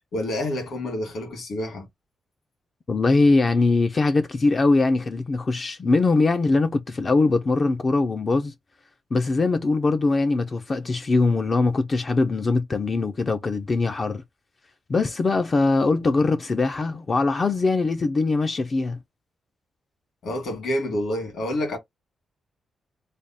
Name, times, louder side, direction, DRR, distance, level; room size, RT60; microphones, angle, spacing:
voice 1, 0.1-1.9 20.2-21.8, left 1 dB, 65° left, 1.7 m, -28 dB
voice 2, 2.9-8.5 9.1-14.2 14.9-19.0, left 3 dB, 30° left, 0.3 m, -22 dB
3.4 x 2.1 x 3.9 m
wide cardioid pair, 170°, 0 cm